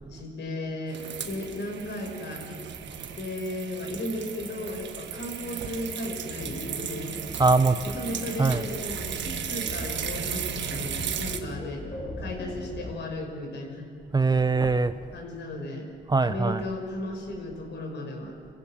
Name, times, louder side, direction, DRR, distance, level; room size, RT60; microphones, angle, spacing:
voice 1, 0.1-2.6 3.2-7.1 7.8-11.8 12.2-13.9 15.1-15.9 16.2-18.4, left 1 dB, 65° left, 3 dB, 5.5 m, -35 dB
sound 1, 0.9-11.4, right 8 dB, 65° right, 1.6 m, -36 dB
sound 2, 6.1-13.0, left 1 dB, 35° left, 5.0 m, -39 dB
voice 2, 7.4-7.9 8.4-8.7 12.2-12.3 14.1-15.1 16.1-16.7, right 3 dB, 20° right, 11 dB, 0.7 m, -23 dB
25.5 x 15.5 x 7.6 m, 2.4 s
cardioid pair, 90°, 20 cm